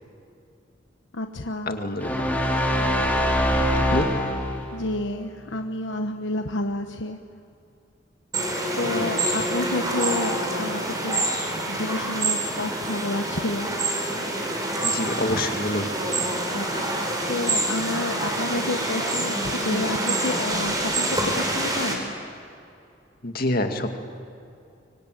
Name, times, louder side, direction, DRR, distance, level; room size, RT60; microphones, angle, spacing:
voice 1, 1.1-1.8 4.7-7.2 8.7-11.3 11.7-13.7 16.5-21.1 21.4-22.1, left 2 dB, 75° left, 5 dB, 1.1 m, -30 dB
voice 2, 1.7-2.2 3.9-4.1 8.9-9.1 14.8-15.9 23.2-24.0, left 1 dB, 50° left, 5 dB, 2.2 m, -26 dB
sound 1, 2.0-4.8, equal, 10° left, 3.7 m, -23 dB
sound 2, 8.3-22.0, right 1 dB, 20° right, 4.3 m, -26 dB
24.5 x 24.0 x 9.2 m, 2.5 s
head